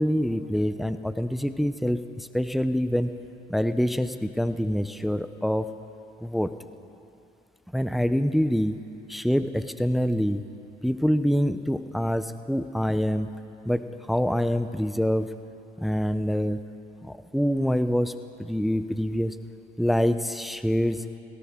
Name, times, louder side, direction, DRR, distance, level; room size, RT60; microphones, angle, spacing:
voice 1, 0.0-3.1 3.5-5.7 6.2-6.5 7.7-8.8 9.1-10.4 10.8-13.3 13.7-15.3 15.8-16.6 17.0-18.1 18.4-19.4 19.8-21.1, equal, ahead, 11 dB, 0.4 m, -25 dB
18.0 x 17.0 x 3.6 m, 2.8 s
cardioid pair, 110°, 17 cm